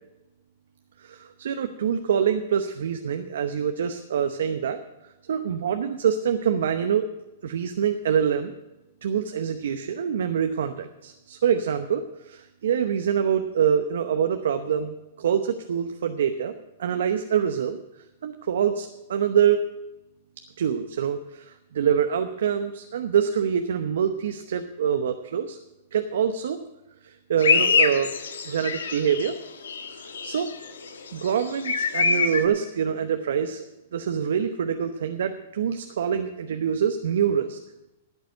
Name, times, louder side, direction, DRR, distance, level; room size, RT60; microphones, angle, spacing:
voice 1, 1.0-4.8 5.3-7.0 7.4-8.5 9.0-16.5 16.8-17.8 18.2-19.6 20.6-25.6 25.9-26.6 27.0-28.1 28.5-29.3 30.0-30.5 31.1-33.6 33.9-37.6, right 8 dB, 75° right, 7 dB, 0.9 m, -25 dB
sound 1, 27.4-29.4 29.6-32.4, left 5 dB, 85° left, 1.4 m, -25 dB
12.0 x 8.1 x 7.8 m, 0.99 s
hypercardioid pair, 125°, 0 cm